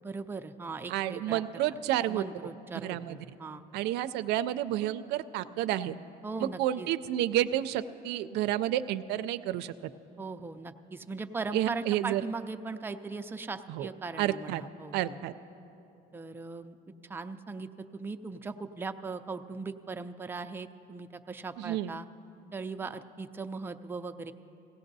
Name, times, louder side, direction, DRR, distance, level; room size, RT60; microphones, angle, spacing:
voice 1, 0.0-1.4 2.1-3.6 6.2-6.9 10.2-15.2 16.1-16.8 17.0-22.1 22.5-24.3, right 4 dB, 10° right, 7 dB, 0.4 m, -39 dB
voice 2, 0.9-2.2 2.8-3.2 3.7-6.0 6.4-9.7 11.5-12.2 13.7-13.9 14.2-14.6 14.9-15.3 21.6-21.9, right 13 dB, 85° right, 12 dB, 0.4 m, -30 dB
17.5 x 16.5 x 2.7 m, 2.9 s
cardioid pair, 110°, 17 cm